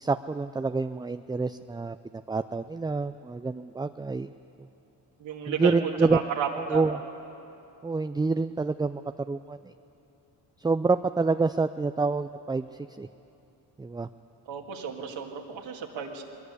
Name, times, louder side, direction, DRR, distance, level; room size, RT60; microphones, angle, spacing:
voice 1, 0.0-2.0 2.3-4.3 5.5-6.2 6.7-7.0 7.8-9.0 9.3-9.6 10.6-12.7 13.0-13.1 13.8-14.1, right 3 dB, 10° right, 10 dB, 0.4 m, -27 dB
voice 2, 5.2-5.7 6.1-6.8 14.5-16.2, right 8 dB, 75° right, 1 dB, 2.4 m, -32 dB
20.5 x 16.0 x 8.3 m, 2.8 s
supercardioid pair, 60°, 46 cm